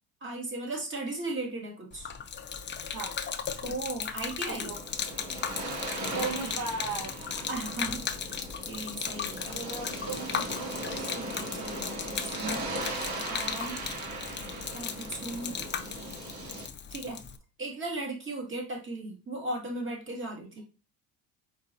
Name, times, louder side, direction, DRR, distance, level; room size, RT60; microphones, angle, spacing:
voice 1, 0.2-2.1 3.6-4.7 7.2-8.1 8.7-9.6 11.0-13.8 14.7-15.6 16.9-17.2 17.6-20.6, right 2 dB, 30° right, -1 dB, 2.1 m, -37 dB
Gurgling / Liquid, 1.9-17.4, left 7 dB, 30° left, 0.6 m, -37 dB
sound 1, 4.4-16.6, right 1 dB, 80° right, 2.6 m, -38 dB
voice 2, 4.5-4.8 6.1-7.1 9.5-10.7, right 4 dB, 50° right, -1 dB, 1.1 m, -36 dB
4.6 x 4.1 x 2.7 m, 0.32 s
supercardioid pair, 90°, 39 cm